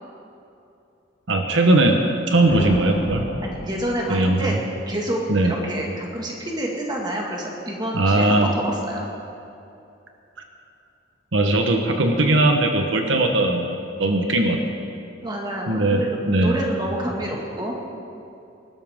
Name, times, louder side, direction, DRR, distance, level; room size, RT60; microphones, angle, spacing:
voice 1, 1.3-2.0 2.3-3.3 4.1-4.6 5.3-5.5 7.9-8.5 11.3-13.7 14.0-14.6 15.7-16.5, right 2 dB, 75° right, 4 dB, 1.1 m, -19 dB
sound 1, 2.5-4.6, left 1 dB, 55° left, 1.0 m, -32 dB
voice 2, 3.4-4.5 4.9-9.1 15.2-17.8, right 1 dB, 20° right, -1 dB, 1.9 m, -28 dB
20.5 x 12.5 x 3.7 m, 2.7 s
head